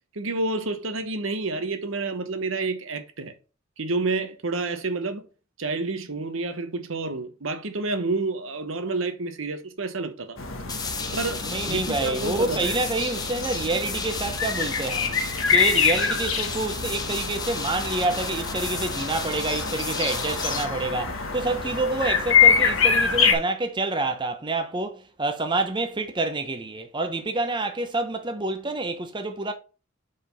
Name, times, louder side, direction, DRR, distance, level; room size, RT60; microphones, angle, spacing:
voice 1, 0.1-3.3 3.8-5.2 5.6-10.4 11.1-12.8, right 3 dB, 70° right, 1.0 m, -29 dB
sound 1, 10.4-23.3, left 6 dB, 70° left, 1.4 m, -25 dB
sound 2, 10.7-20.7, left 4 dB, 20° left, 0.8 m, -34 dB
voice 2, 11.4-15.1 15.5-29.5, right 2 dB, 25° right, 0.7 m, -28 dB
5.0 x 4.5 x 5.5 m
head